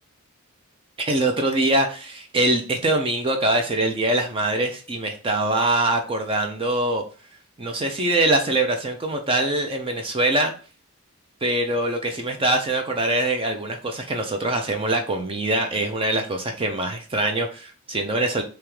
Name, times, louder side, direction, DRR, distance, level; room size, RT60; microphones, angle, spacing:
voice 1, 1.0-7.0 7.6-10.5 11.4-18.4, right 2 dB, 25° right, 4 dB, 0.4 m, -23 dB
3.5 x 2.9 x 3.1 m, 0.37 s
head